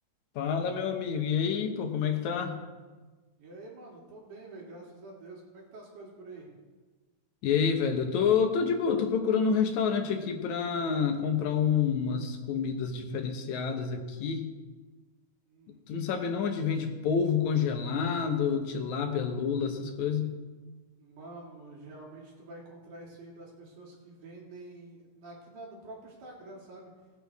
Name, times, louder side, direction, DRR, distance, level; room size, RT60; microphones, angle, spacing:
voice 1, 0.4-2.6 7.4-14.5 15.9-20.3, left 6 dB, 70° left, 5 dB, 2.2 m, -28 dB
voice 2, 3.4-6.5 15.5-15.8 16.6-16.7 21.0-26.9, right 2 dB, 75° right, -3 dB, 4.1 m, -47 dB
18.5 x 8.4 x 3.5 m, 1.3 s
omnidirectional pair, 3.7 m